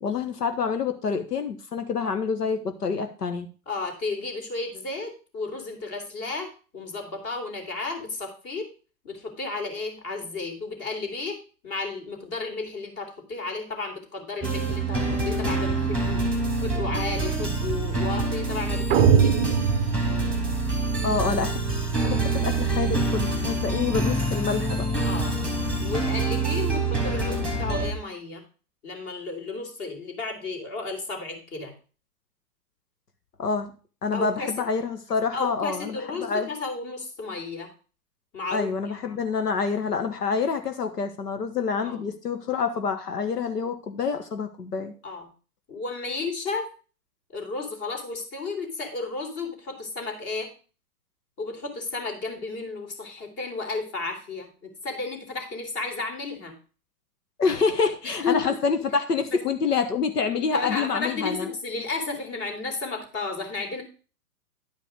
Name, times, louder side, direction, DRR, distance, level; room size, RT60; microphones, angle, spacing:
voice 1, 0.0-3.5 21.0-21.6 22.0-24.9 33.4-33.7 34.0-36.5 38.5-44.9 57.4-61.5, left 5 dB, 80° left, 7 dB, 1.3 m, -27 dB
voice 2, 3.7-8.7 9.0-16.2 16.6-19.6 25.1-25.3 25.8-28.4 28.8-31.7 34.1-34.5 35.3-37.7 38.3-38.9 41.8-42.1 45.0-45.3 45.7-46.7 47.3-50.5 51.4-56.6 58.0-58.6 59.3-59.4 60.5-63.8, left 3 dB, 30° left, 5 dB, 2.9 m, -33 dB
sound 1, 14.4-27.9, right 2 dB, ahead, 1.9 m, -26 dB
sound 2, 18.9-21.0, right 7 dB, 20° right, 0.7 m, -22 dB
11.0 x 5.0 x 5.0 m, 0.36 s
hypercardioid pair, 125°, 47 cm